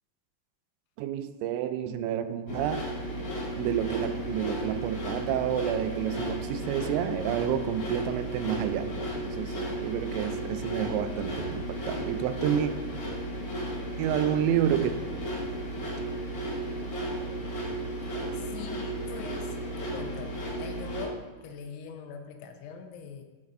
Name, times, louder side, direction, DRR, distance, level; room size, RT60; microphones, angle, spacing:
voice 1, 1.0-2.9 3.6-12.7 14.0-14.9, right 10 dB, 85° right, 10 dB, 2.8 m, -29 dB
sound 1, 2.5-21.1, right 1 dB, 60° left, 2.3 m, -34 dB
voice 2, 18.3-23.2, left 6 dB, 90° left, 6 dB, 3.1 m, -43 dB
15.0 x 5.4 x 2.6 m, 1.3 s
omnidirectional pair, 5.2 m